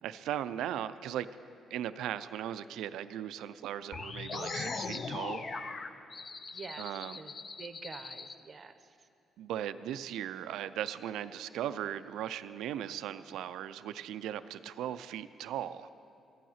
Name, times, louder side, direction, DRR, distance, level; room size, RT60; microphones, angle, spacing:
voice 1, 0.0-1.3 1.7-5.5 6.8-7.2 9.4-15.9, right 11 dB, 85° right, 13 dB, 0.3 m, -38 dB
sound 1, 3.9-8.3, left 4 dB, 40° left, 0.6 m, -40 dB
voice 2, 6.5-6.9 7.1-9.1, right 5 dB, 40° right, 10 dB, 0.6 m, -47 dB
14.0 x 9.3 x 5.7 m, 2.6 s
cardioid pair, 90°, 0 cm